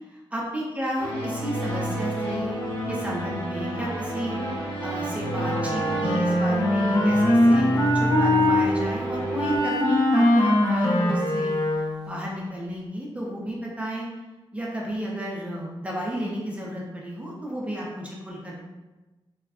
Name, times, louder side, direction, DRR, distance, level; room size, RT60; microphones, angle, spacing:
voice 1, 0.3-2.6 2.9-7.7 7.9-14.1 14.5-18.6, equal, 15° right, -4 dB, 0.4 m, -32 dB
sound 1, 1.0-9.6, right 1 dB, 25° left, 1.2 m, -29 dB
Wind instrument woodwind instrument, 5.5-8.7 9.4-12.1, left 1 dB, 45° left, 0.4 m, -21 dB
3.4 x 2.0 x 2.3 m, 1.1 s
wide cardioid pair, 160°, 9 cm